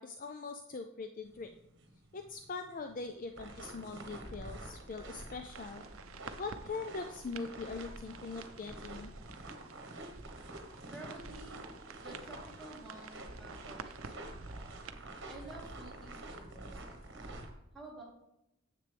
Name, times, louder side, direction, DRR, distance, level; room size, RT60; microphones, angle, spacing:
voice 1, 0.0-1.5 2.1-5.8 6.4-9.1, left 4 dB, 40° left, 6 dB, 0.4 m, -42 dB
sound 1, 1.3-17.5, right 2 dB, 55° right, 1.3 m, -48 dB
sound 2, 5.5-14.9, right 5 dB, 70° right, 0.6 m, -52 dB
voice 2, 10.9-11.6 12.0-14.8 15.3-17.3 17.7-18.0, right 2 dB, 5° left, -7 dB, 3.4 m, -51 dB
9.8 x 7.5 x 3.4 m, 0.85 s
head